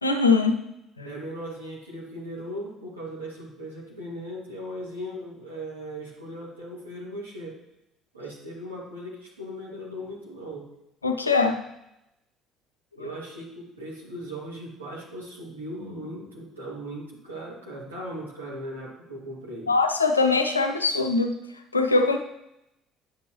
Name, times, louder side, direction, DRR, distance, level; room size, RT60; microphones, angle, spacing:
voice 1, 0.0-0.6 1.0-1.1 11.0-11.6 13.0-13.1 19.7-21.3 21.7-22.2, left 4 dB, 90° left, 6 dB, 0.6 m, -22 dB
voice 2, 1.0-7.6 8.1-10.7 12.9-19.7, equal, 85° right, -5 dB, 2.1 m, -38 dB
10.0 x 6.9 x 3.0 m, 0.86 s
figure-of-eight pair, 55°, 0 cm